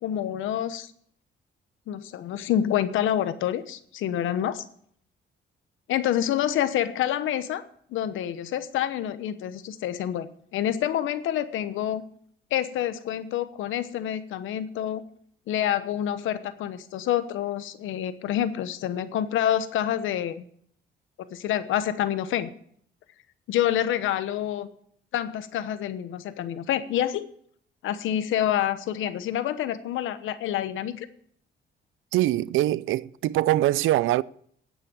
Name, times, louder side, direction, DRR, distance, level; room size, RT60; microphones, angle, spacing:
voice 1, 0.0-0.9 1.9-4.6 5.9-7.6 7.9-12.0 12.5-15.0 15.5-20.4 21.3-22.5 23.5-24.7 25.1-27.2 27.8-31.1, left 11 dB, 85° left, 1.1 m, -27 dB
voice 2, 32.1-34.2, right 15 dB, 85° right, 0.5 m, -23 dB
9.8 x 9.1 x 8.6 m
cardioid pair, 90°, 20 cm